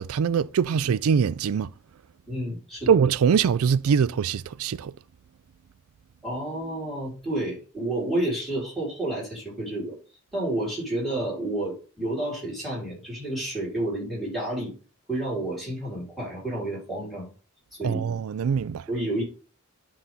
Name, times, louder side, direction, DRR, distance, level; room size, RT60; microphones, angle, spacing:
voice 1, 0.0-1.7 2.9-4.9 17.8-18.8, right 7 dB, 70° right, 0.4 m, -23 dB
voice 2, 2.3-3.0 6.2-9.9 10.3-14.7 15.1-17.3 17.7-18.0 18.9-19.2, right 1 dB, ahead, 5.0 m, -30 dB
11.5 x 4.1 x 3.8 m
head